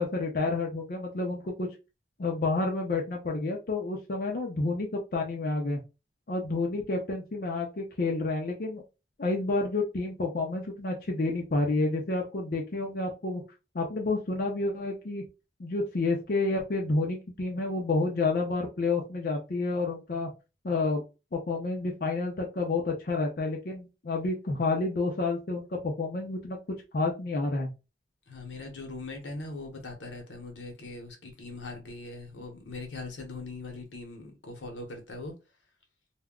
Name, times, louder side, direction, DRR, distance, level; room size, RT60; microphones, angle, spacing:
voice 1, 0.0-1.7 2.2-5.8 6.3-8.8 9.2-13.4 13.7-15.2 15.6-20.3 20.6-21.0 21.3-26.6 26.9-27.7, left 3 dB, 50° left, 0.5 m, -29 dB
voice 2, 28.3-35.3, left 3 dB, 85° left, 0.9 m, -41 dB
2.2 x 2.1 x 3.5 m
head